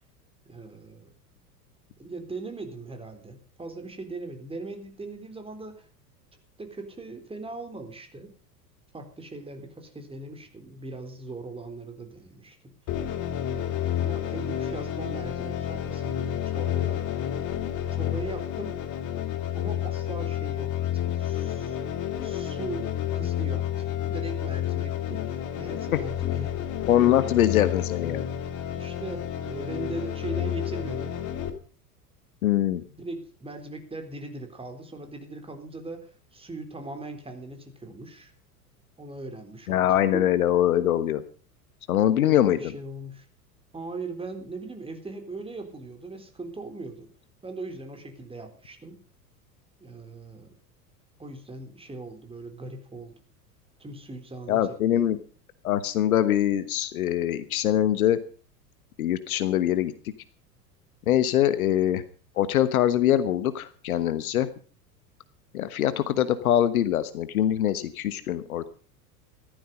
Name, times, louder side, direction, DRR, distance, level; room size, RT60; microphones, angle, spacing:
voice 1, 0.5-1.1 2.0-5.9 6.6-8.3 8.9-12.7 13.4-17.0 17.8-18.8 19.5-21.8 22.2-26.6 27.2-27.6 28.8-31.2 32.9-38.3 39.0-40.3 42.2-43.3 43.7-47.1 47.4-49.0 49.8-50.5 51.2-53.1 53.8-55.1, right 2 dB, 10° right, 5 dB, 3.7 m, -39 dB
sound 1, 12.9-31.5, left 10 dB, 40° left, 2.6 m, -30 dB
voice 2, 26.9-28.3 32.4-32.8 39.7-41.2 41.9-42.6 54.5-55.2 55.6-58.2 59.0-59.9 61.1-62.0 62.4-64.5 65.5-68.7, left 11 dB, 60° left, 14 dB, 1.3 m, -23 dB
15.5 x 13.5 x 5.4 m, 0.41 s
figure-of-eight pair, 85°, 48 cm